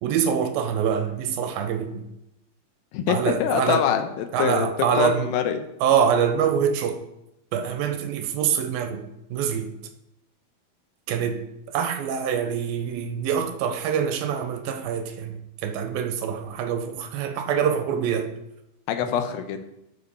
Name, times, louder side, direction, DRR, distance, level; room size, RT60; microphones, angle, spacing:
voice 1, 0.0-2.1 3.1-3.9 4.3-5.3 5.8-7.0 7.5-9.1 9.3-9.7 11.1-11.4 11.7-18.3 19.0-19.1, right 7 dB, 80° right, 2.4 m, -25 dB
voice 2, 2.9-4.7 4.9-5.7 18.9-19.6, left 9 dB, 80° left, 2.4 m, -24 dB
12.0 x 6.9 x 4.1 m
omnidirectional pair, 4.4 m